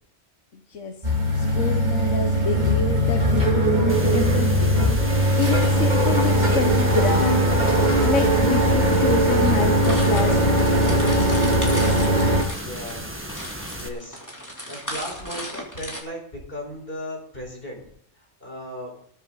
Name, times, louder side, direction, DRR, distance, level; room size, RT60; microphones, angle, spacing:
voice 1, 0.5-0.9 1.4-4.8 5.4-7.5 8.0-11.0, left 5 dB, 85° left, 4 dB, 1.5 m, -28 dB
sound 1, 1.0-12.4, equal, 35° right, 2.8 m, -19 dB
sound 2, 3.9-13.9, right 1 dB, 10° right, 1.5 m, -36 dB
sound 3, 9.8-16.0, equal, 15° left, 3.3 m, -36 dB
voice 2, 12.6-13.2 13.7-14.2 14.7-17.9 18.4-18.9, equal, 50° left, 0 dB, 5.1 m, -36 dB
20.0 x 9.1 x 4.0 m, 0.65 s
omnidirectional pair, 1.2 m